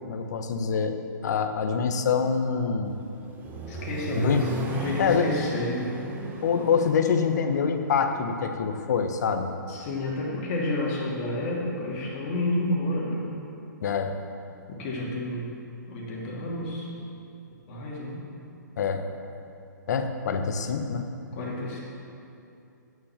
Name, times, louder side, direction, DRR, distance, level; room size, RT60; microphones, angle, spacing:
voice 1, 0.1-1.0 1.2-2.9 4.1-4.4 5.0-5.4 6.4-9.5 13.8-14.1 18.8-19.1 19.9-21.1, left 6 dB, 60° left, 6 dB, 1.0 m, -25 dB
Accelerating revving vroom, 2.9-8.9, right 2 dB, 15° right, 1.0 m, -35 dB
voice 2, 3.7-4.5 4.8-6.0 9.7-13.4 14.7-15.5 15.9-16.9 17.7-18.2 21.3-21.8, left 1 dB, 40° left, -4 dB, 2.6 m, -30 dB
8.3 x 7.3 x 7.4 m, 2.7 s
hypercardioid pair, 135°, 10 cm